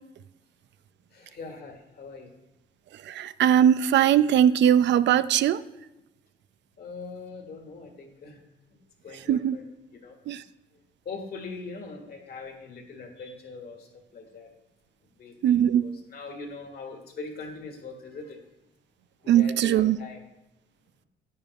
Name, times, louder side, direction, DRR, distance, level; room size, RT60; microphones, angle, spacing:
voice 1, 1.1-2.3 6.8-8.4 9.0-9.6 9.9-10.4 11.1-14.5 15.2-18.4 19.2-20.2, left 4 dB, 50° left, 3 dB, 1.9 m, -41 dB
voice 2, 2.9-5.6 9.1-9.6 10.3-10.4 15.4-15.9 19.3-20.0, right 10 dB, 65° right, 15 dB, 0.4 m, -21 dB
10.0 x 9.1 x 2.4 m, 0.96 s
cardioid pair, 90°, 20 cm